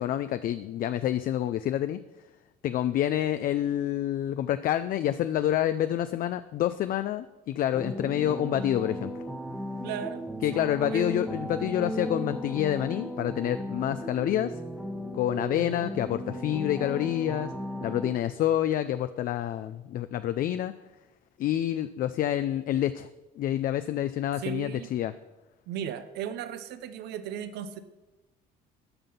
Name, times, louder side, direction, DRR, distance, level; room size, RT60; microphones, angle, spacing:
voice 1, 0.0-2.0 2.6-9.1 10.4-14.5 15.1-17.5 17.8-20.7 21.4-23.1 23.4-25.1, left 12 dB, 55° left, 12 dB, 0.4 m, -28 dB
sound 1, 7.7-18.2, equal, 5° right, 1.0 m, -36 dB
voice 2, 9.8-10.2 10.5-11.1 24.4-24.9 25.7-27.8, right 9 dB, 80° right, 11 dB, 0.8 m, -36 dB
12.5 x 5.8 x 5.6 m, 1.1 s
cardioid pair, 110°, 17 cm